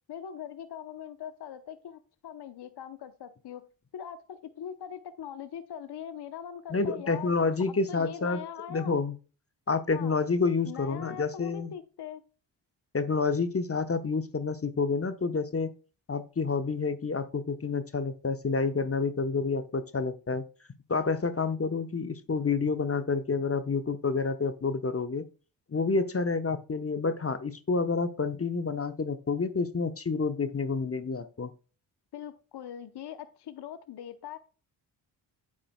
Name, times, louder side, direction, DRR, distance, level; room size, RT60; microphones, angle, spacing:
voice 1, 0.1-3.6 3.9-7.3 7.7-9.0 9.9-10.2 10.7-12.2 32.1-34.4, left 9 dB, 55° left, 11 dB, 0.9 m, -41 dB
voice 2, 6.7-8.4 8.7-9.1 9.7-11.7 12.9-15.7 16.1-20.4 20.9-25.2 25.7-31.5, left 4 dB, 30° left, 11 dB, 0.9 m, -29 dB
9.0 x 7.4 x 2.2 m, 0.35 s
supercardioid pair, 40°, 48 cm